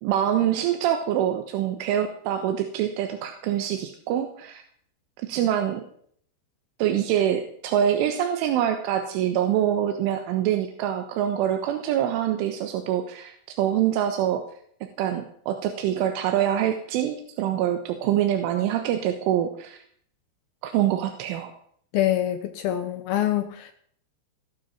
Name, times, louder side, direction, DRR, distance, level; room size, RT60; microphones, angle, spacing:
voice 1, 0.0-4.6 5.2-5.8 6.8-14.4 14.8-19.8 20.6-21.5, right 10 dB, 80° right, 6 dB, 3.6 m, -25 dB
voice 2, 21.9-23.7, left 12 dB, 80° left, 9 dB, 2.2 m, -25 dB
18.5 x 12.5 x 5.7 m, 0.62 s
omnidirectional pair, 5.7 m